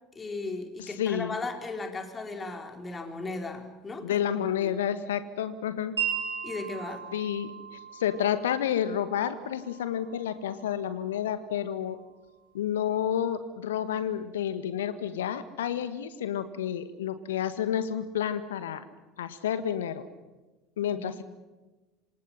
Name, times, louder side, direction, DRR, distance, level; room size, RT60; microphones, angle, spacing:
voice 1, 0.1-4.7 6.4-7.1 20.8-21.1, left 3 dB, 25° left, 4 dB, 4.1 m, -37 dB
voice 2, 0.8-1.4 4.0-6.0 7.1-12.0 12.5-18.8 19.2-20.0 20.8-21.2, left 9 dB, 70° left, 12 dB, 1.7 m, -30 dB
Wind chime, 6.0-12.0, right 8 dB, 80° right, 4.8 m, -38 dB
27.0 x 26.0 x 5.8 m, 1.2 s
figure-of-eight pair, 65°, 0 cm